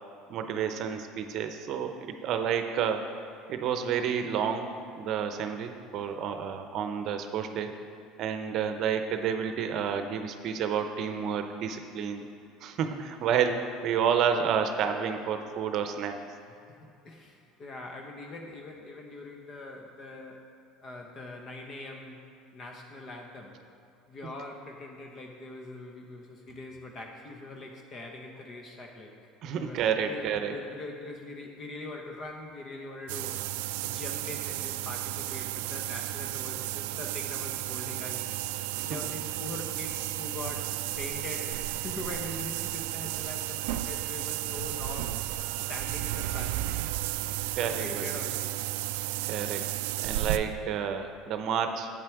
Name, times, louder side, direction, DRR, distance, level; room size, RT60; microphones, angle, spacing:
voice 1, 0.3-3.1 3.5-7.7 8.2-12.3 12.6-16.2 29.4-30.5 38.7-39.0 47.2-47.3 47.6-48.2 49.3-49.7 50.0-51.9, right 7 dB, 55° right, 7 dB, 0.7 m, -30 dB
voice 2, 16.7-20.4 20.8-22.2 22.5-23.6 24.1-29.1 29.5-33.4 33.8-38.3 38.8-40.7 41.0-45.2 45.7-46.8 47.2-48.5, left 2 dB, 40° left, 2 dB, 1.1 m, -42 dB
sound 1, 33.1-50.4, right 15 dB, 80° right, 0.3 m, -33 dB
8.3 x 7.5 x 4.7 m, 2.5 s
supercardioid pair, 95°, 0 cm